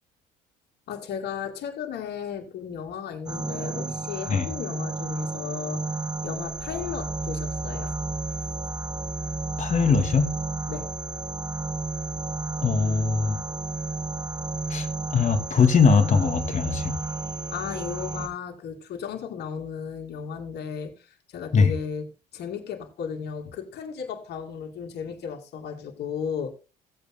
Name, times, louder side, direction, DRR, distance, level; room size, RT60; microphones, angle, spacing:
voice 1, 0.9-5.9 6.2-7.9 10.7-10.9 17.5-26.5, left 7 dB, 65° left, 2.4 m, -35 dB
sound 1, 3.3-18.3, right 3 dB, 20° right, 1.6 m, -32 dB
voice 2, 9.6-10.3 12.6-13.4 14.7-14.9 15.1-17.0 21.5-21.7, left 5 dB, 40° left, 2.2 m, -21 dB
17.0 x 8.4 x 2.2 m
supercardioid pair, 75°, 18 cm